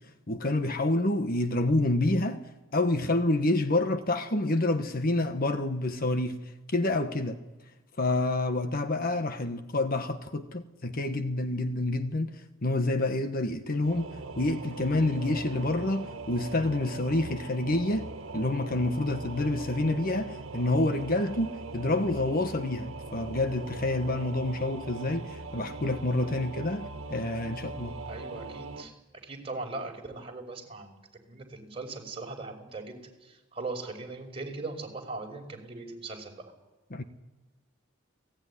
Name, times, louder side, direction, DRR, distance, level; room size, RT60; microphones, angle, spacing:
voice 1, 0.3-2.4 2.7-6.4 6.7-7.4 8.0-12.3 12.6-27.9 36.9-37.0, left 2 dB, 45° left, 1.3 m, -28 dB
Singing / Musical instrument, 13.8-28.8, right 3 dB, 75° right, 1.7 m, -41 dB
voice 2, 28.1-28.9 29.2-31.0 31.3-36.4, right 3 dB, 30° right, 5.4 m, -39 dB
30.0 x 18.5 x 9.9 m
head